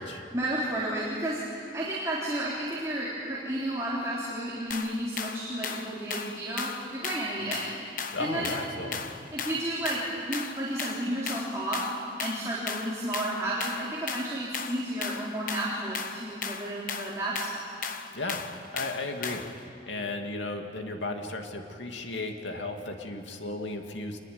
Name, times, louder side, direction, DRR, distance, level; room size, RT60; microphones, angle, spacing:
voice 1, 0.3-7.6 8.2-8.5 9.3-11.9 12.2-17.6, right 1 dB, 15° right, -7 dB, 3.7 m, -32 dB
sound 1, 4.7-19.6, left 6 dB, 45° left, 1.2 m, -37 dB
voice 2, 8.1-9.1 18.1-18.4 18.7-19.4 19.9-24.2, left 2 dB, 85° left, 4 dB, 2.5 m, -35 dB
26.0 x 21.0 x 9.5 m, 2.6 s
head